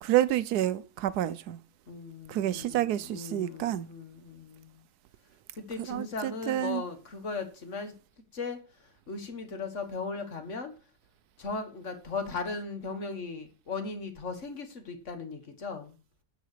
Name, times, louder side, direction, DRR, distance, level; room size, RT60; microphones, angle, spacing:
voice 1, 0.0-1.6 2.3-3.9 5.9-6.8, right 13 dB, 70° right, 1.0 m, -29 dB
voice 2, 1.9-4.8 5.6-7.9 8.3-10.7 11.4-16.0, left 4 dB, 40° left, 1.6 m, -37 dB
9.3 x 4.9 x 6.7 m
omnidirectional pair, 2.1 m